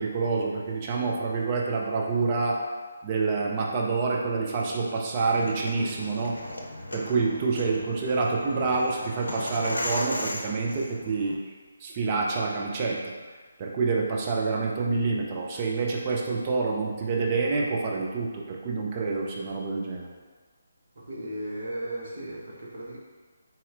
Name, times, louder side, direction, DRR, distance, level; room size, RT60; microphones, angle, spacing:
voice 1, 0.0-2.6 3.0-6.4 6.9-11.4 11.8-13.0 13.6-20.1, right 4 dB, 30° right, -1 dB, 0.6 m, -27 dB
sound 1, 5.2-11.3, left 1 dB, 75° left, 0.6 m, -37 dB
voice 2, 21.0-23.0, right 1 dB, 60° right, -3 dB, 1.0 m, -36 dB
4.2 x 4.1 x 2.5 m, 1.4 s
figure-of-eight pair, 145°, 0 cm